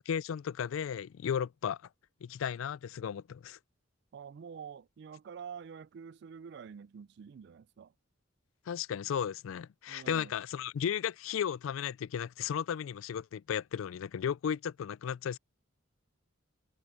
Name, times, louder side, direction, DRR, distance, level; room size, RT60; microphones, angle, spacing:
voice 1, 0.0-1.8 2.2-3.6 8.7-15.4, left 8 dB, 90° left, 0.3 m, -35 dB
voice 2, 4.1-7.9 9.9-10.4, right 7 dB, 55° right, 0.3 m, -47 dB
head